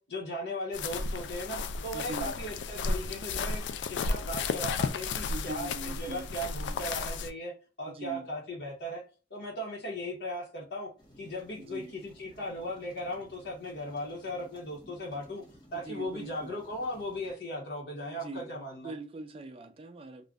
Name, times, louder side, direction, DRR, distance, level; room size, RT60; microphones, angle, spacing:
voice 1, 0.1-5.7 6.0-7.5 7.8-9.0 9.3-10.9 11.2-15.4 15.7-18.9, equal, 65° left, 0.8 m, -37 dB
sound 1, 0.7-7.3, left 4 dB, 85° left, 0.3 m, -33 dB
voice 2, 1.9-2.4 5.3-6.4 7.9-8.3 11.6-12.0 15.7-16.6 18.1-20.2, right 2 dB, 30° right, 0.3 m, -42 dB
sound 2, 11.0-17.3, equal, 25° left, 0.8 m, -57 dB
2.5 x 2.1 x 3.5 m
head